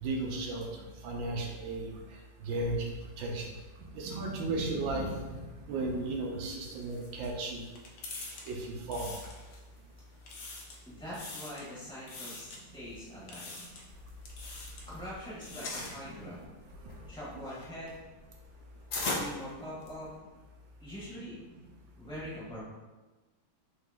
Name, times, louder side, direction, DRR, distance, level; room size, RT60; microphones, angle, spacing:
voice 1, 0.0-2.0 2.4-3.5 3.9-5.4 5.7-7.6 8.5-9.2, right 2 dB, 80° right, 1 dB, 1.3 m, -35 dB
sound 1, 6.7-9.8 10.1-10.8 11.1-11.7 12.1-12.6 13.3-13.9 14.3-14.9 15.3-16.0, left 3 dB, 70° left, 1.2 m, -46 dB
voice 2, 10.8-13.5 14.9-16.4 17.1-18.0 19.0-20.1 20.8-21.3 22.0-22.6, equal, 5° left, -9 dB, 0.7 m, -43 dB
sound 2, 13.9-15.1 15.3-16.0 16.6-20.2, left 2 dB, 90° left, 0.6 m, -37 dB
3.9 x 2.8 x 3.5 m, 1.2 s
omnidirectional pair, 2.1 m